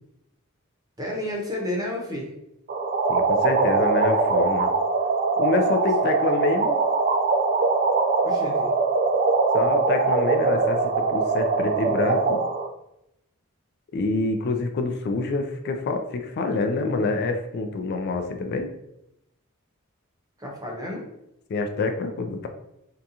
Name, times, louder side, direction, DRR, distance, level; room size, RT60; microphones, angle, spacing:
voice 1, 1.0-2.3 8.2-8.7 20.4-21.0, left 1 dB, 15° right, -1 dB, 0.7 m, -31 dB
sound 1, 2.7-12.7, right 4 dB, 40° right, 0.3 m, -22 dB
voice 2, 3.1-4.7 5.4-6.8 9.5-12.4 13.9-18.7 21.5-22.5, left 3 dB, 50° left, 5 dB, 0.3 m, -26 dB
3.8 x 2.3 x 2.8 m, 0.84 s
head